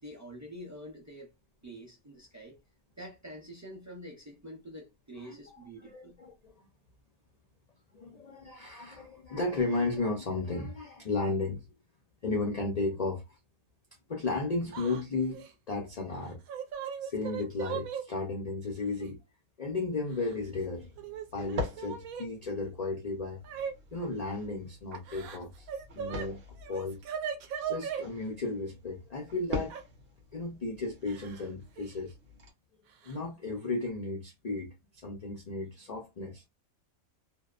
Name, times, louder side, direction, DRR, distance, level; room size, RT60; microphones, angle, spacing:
voice 1, 0.0-1.3 1.6-2.6 3.0-6.2, equal, 25° right, 0.3 m, -46 dB
voice 2, 5.9-6.5 7.9-11.7 12.2-13.2 14.1-16.4 17.0-19.2 19.6-20.9 21.3-25.7 25.9-27.0 27.7-29.7 30.3-32.1 33.0-36.4, left 3 dB, 75° left, 0.3 m, -34 dB
Yell / Crying sobbing, 14.7-15.0 15.3-15.5 16.2-18.0 19.0-19.1 20.1-20.7 21.0-22.3 23.4-23.7 24.9-26.3 26.6-28.0 29.7-29.8 31.1-31.5 31.8-31.9 33.0-33.2 33.6-33.9, right 8 dB, 75° right, 1.0 m, -38 dB
sound 1, 20.1-32.5, left 1 dB, 50° right, 0.9 m, -44 dB
2.7 x 2.0 x 2.3 m
omnidirectional pair, 1.5 m